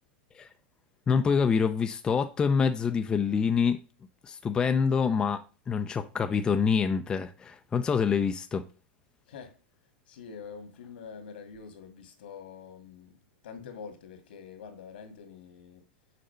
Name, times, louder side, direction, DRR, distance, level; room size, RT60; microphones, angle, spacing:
voice 1, 1.1-3.8 4.2-8.6, left 6 dB, 15° left, 0.5 m, -26 dB
voice 2, 9.3-9.6 10.1-15.9, left 6 dB, 80° left, 2.1 m, -46 dB
6.6 x 4.3 x 5.6 m
supercardioid pair, 145°, 5 cm